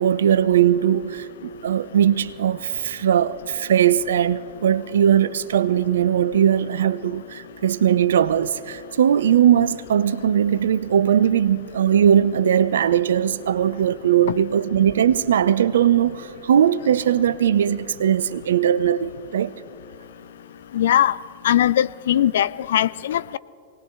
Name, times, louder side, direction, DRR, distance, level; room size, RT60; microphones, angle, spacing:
voice 1, 0.0-19.5, right 9 dB, 65° right, 0.5 m, -19 dB
voice 2, 20.7-21.2 21.4-23.4, left 11 dB, 60° left, 0.3 m, -20 dB
27.5 x 19.5 x 2.4 m
figure-of-eight pair, 90°, 0 cm